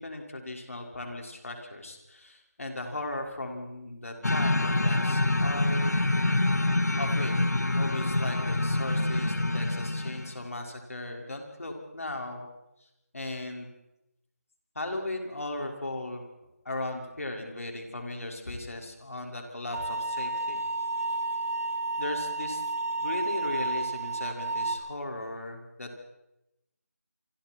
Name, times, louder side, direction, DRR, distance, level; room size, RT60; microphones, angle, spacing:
voice 1, 0.0-6.0 7.0-7.3 7.7-12.5 13.1-13.7 14.8-16.2 16.6-20.6 22.0-22.6 23.0-26.0, left 2 dB, 60° left, 2 dB, 5.8 m, -37 dB
sound 1, 4.2-10.4, left 2 dB, 80° left, 1.7 m, -26 dB
sound 2, 19.7-24.7, right 2 dB, 65° right, 3.7 m, -31 dB
27.5 x 25.5 x 4.7 m, 0.88 s
figure-of-eight pair, 170°, 9 cm